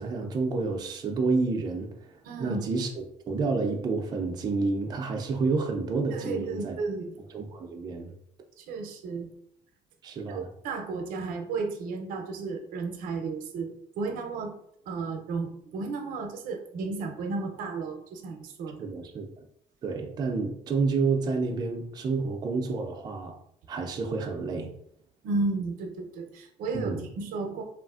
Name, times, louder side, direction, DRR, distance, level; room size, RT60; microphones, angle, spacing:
voice 1, 0.0-6.8 7.3-8.1 10.0-10.5 18.8-19.3 19.8-23.4 23.7-24.7 26.7-27.0, right 4 dB, 30° right, 2 dB, 0.3 m, -29 dB
voice 2, 2.2-2.7 6.1-7.2 8.6-9.3 10.3-14.5 14.9-18.8 25.2-27.6, right 3 dB, 85° right, 4 dB, 0.5 m, -33 dB
3.1 x 2.4 x 2.3 m, 0.71 s
cardioid pair, 155°, 14 cm